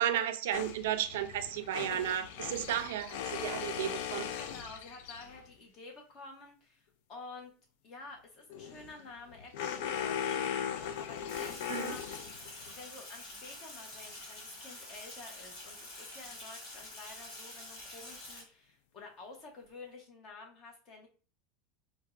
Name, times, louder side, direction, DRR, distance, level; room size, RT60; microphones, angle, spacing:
voice 1, 0.0-4.3 11.7-12.0, right 11 dB, 85° right, 0.3 m, -33 dB
sound 1, 0.5-5.5 8.5-12.7, left 8 dB, 65° left, 0.3 m, -38 dB
voice 2, 4.4-7.6 7.8-12.4 12.7-21.1, left 3 dB, 35° left, 0.8 m, -50 dB
Sink (filling or washing), 11.3-18.4, left 1 dB, 50° left, 1.5 m, -47 dB
4.3 x 2.1 x 2.3 m
supercardioid pair, 160°, 0 cm